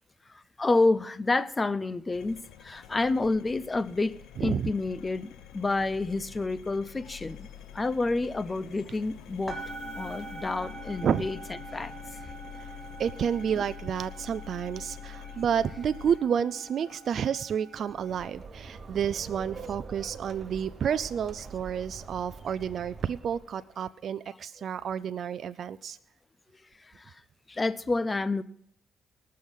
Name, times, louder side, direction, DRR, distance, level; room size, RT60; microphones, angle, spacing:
voice 1, 0.6-7.5 7.7-9.6 10.0-11.4 11.7-12.3 13.6-13.7 26.8-27.2 27.5-28.4, left 3 dB, 25° left, 0.6 m, -29 dB
sound 1, 2.1-16.2, left 10 dB, 90° left, 0.8 m, -46 dB
voice 2, 4.4-4.7 11.0-11.3 12.6-12.7 13.0-26.0, right 8 dB, 60° right, 0.4 m, -30 dB
sound 2, 7.6-7.7 8.0-9.1 9.4-18.3, right 2 dB, ahead, 2.5 m, -44 dB
sound 3, 17.7-23.7, right 4 dB, 40° right, 1.1 m, -45 dB
19.0 x 6.5 x 5.5 m
cardioid pair, 90°, 0 cm